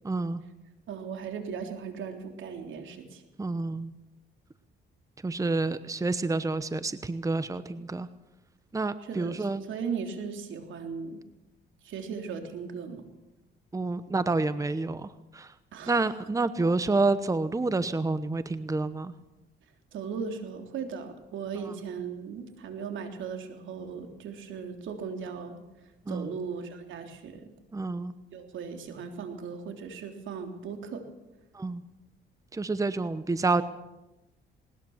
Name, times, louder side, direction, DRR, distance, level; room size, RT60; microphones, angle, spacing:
voice 1, 0.0-0.4 3.4-3.9 5.2-8.1 8.7-9.6 13.7-15.5 15.9-19.1 26.1-26.3 27.7-28.1 31.5-31.8 32.5-33.6, right 3 dB, 15° right, 13 dB, 1.0 m, -28 dB
voice 2, 0.9-3.2 9.0-11.2 11.8-13.0 15.7-16.0 19.9-27.5 28.3-31.0, right 6 dB, 75° right, 5 dB, 3.5 m, -37 dB
20.0 x 19.5 x 7.3 m, 0.98 s
cardioid pair, 90°, 20 cm